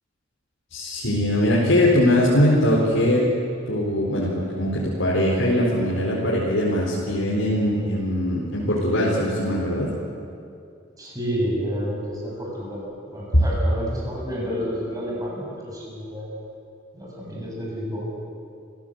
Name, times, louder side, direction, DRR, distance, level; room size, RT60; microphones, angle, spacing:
voice 1, 0.7-3.3 3.7-9.9 13.3-13.4, left 1 dB, 80° left, -5 dB, 4.2 m, -21 dB
voice 2, 11.0-12.8 13.1-16.4 16.9-18.1, equal, 20° right, -4 dB, 7.8 m, -30 dB
28.5 x 16.5 x 8.0 m, 2.5 s
head